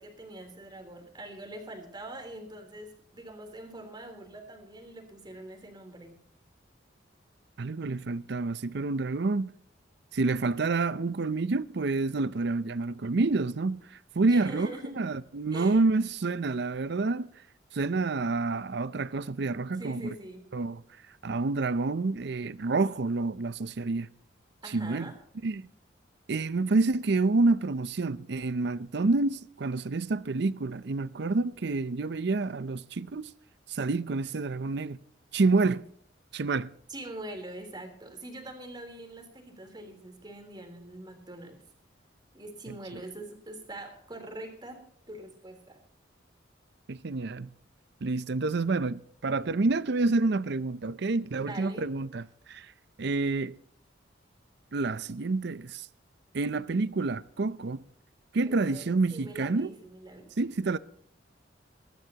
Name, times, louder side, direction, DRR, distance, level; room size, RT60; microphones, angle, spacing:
voice 1, 0.0-6.2 14.3-15.0 15.5-15.8 19.8-20.5 24.6-25.1 36.9-41.6 42.3-45.8 51.2-51.9 58.5-60.3, right 1 dB, 25° right, 3.6 m, -43 dB
voice 2, 7.6-9.5 10.1-14.7 15.0-17.3 17.7-20.1 20.5-20.8 21.2-24.1 24.6-25.1 25.4-25.7 26.3-33.3 33.7-35.0 35.3-35.8 36.3-36.7 46.9-47.5 48.0-52.7 53.0-53.6 54.7-55.9 56.3-57.8 58.3-59.7 60.4-60.8, right 3 dB, 60° right, 0.6 m, -28 dB
22.5 x 12.0 x 2.9 m
head